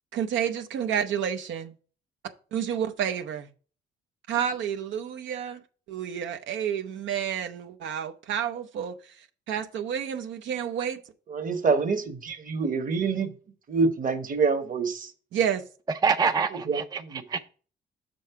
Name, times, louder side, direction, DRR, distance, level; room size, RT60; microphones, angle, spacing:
voice 1, 0.1-1.7 2.5-3.5 4.3-5.6 5.9-9.0 9.5-11.0 15.3-15.6, right 8 dB, 75° right, 0.6 m, -29 dB
voice 2, 11.3-13.3 13.7-15.1 16.5-17.2, right 4 dB, 45° right, 1.1 m, -26 dB
voice 3, 16.0-17.4, right 5 dB, 20° right, 0.4 m, -26 dB
6.6 x 5.3 x 4.5 m
cardioid pair, 90°, 20 cm